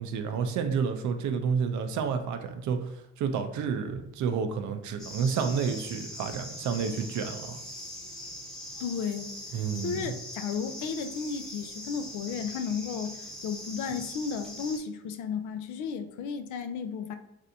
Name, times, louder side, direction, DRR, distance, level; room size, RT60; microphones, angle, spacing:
voice 1, 0.0-7.6 9.5-10.1, right 6 dB, 70° right, 7 dB, 0.5 m, -30 dB
sound 1, 5.0-14.8, left 1 dB, ahead, 0.8 m, -42 dB
voice 2, 8.8-17.2, left 6 dB, 80° left, 8 dB, 0.5 m, -34 dB
3.3 x 2.6 x 2.6 m, 0.91 s
cardioid pair, 90°, 30 cm